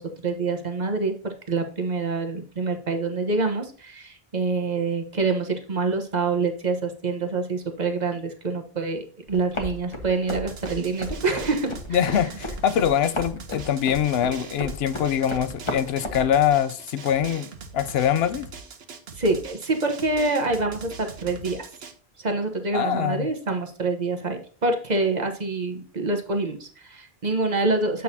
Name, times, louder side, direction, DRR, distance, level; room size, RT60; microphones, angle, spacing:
voice 1, 0.0-12.3 19.1-21.7 22.2-28.0, right 3 dB, 45° right, 1.1 m, -26 dB
sound 1, 9.3-16.3, left 1 dB, 30° left, 1.2 m, -34 dB
Drum, 10.3-21.9, right 5 dB, 75° right, 1.1 m, -42 dB
voice 2, 11.9-18.5 22.7-23.3, left 9 dB, 80° left, 0.8 m, -23 dB
8.1 x 6.3 x 2.7 m
omnidirectional pair, 1.1 m